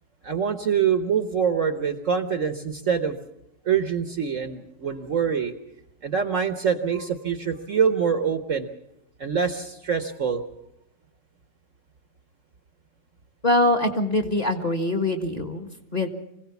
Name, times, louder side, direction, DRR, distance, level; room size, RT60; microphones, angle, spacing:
voice 1, 0.2-3.2 3.6-5.5 6.0-8.7 9.2-10.4, right 7 dB, 50° right, 9 dB, 1.2 m, -25 dB
voice 2, 13.4-16.1, left 1 dB, 25° left, 6 dB, 1.6 m, -23 dB
24.5 x 16.5 x 7.0 m, 0.84 s
omnidirectional pair, 1.9 m